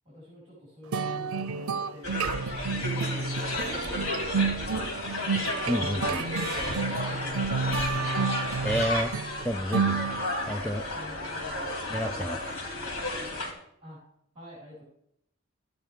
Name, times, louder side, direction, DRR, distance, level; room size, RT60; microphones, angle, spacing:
voice 1, 0.0-2.2 2.8-5.2 6.0-8.2 9.9-10.3 10.9-11.8 13.8-14.0 14.3-14.8, left 1 dB, 25° right, -8 dB, 4.9 m, -48 dB
sound 1, 0.9-10.6, right 5 dB, 85° right, 0.6 m, -30 dB
sound 2, 2.0-13.5, left 2 dB, 80° left, 2.6 m, -33 dB
voice 2, 5.7-6.2 8.6-9.1 9.4-10.0 10.5-10.9 11.9-12.4, equal, 5° left, 9 dB, 0.4 m, -30 dB
12.5 x 9.0 x 3.5 m, 0.73 s
head